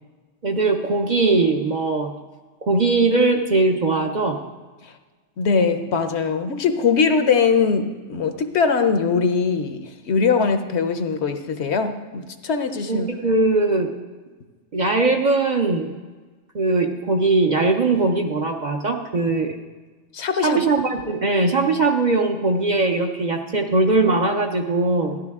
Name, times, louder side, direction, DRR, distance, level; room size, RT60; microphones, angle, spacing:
voice 1, 0.4-2.1 2.6-4.4 12.9-13.9 14.7-15.9 16.5-19.5 20.4-25.2, right 3 dB, 45° right, 2 dB, 0.7 m, -20 dB
voice 2, 5.4-13.1 20.1-20.6, left 5 dB, 65° left, 8 dB, 1.0 m, -21 dB
13.5 x 10.5 x 3.5 m, 1.3 s
omnidirectional pair, 1.3 m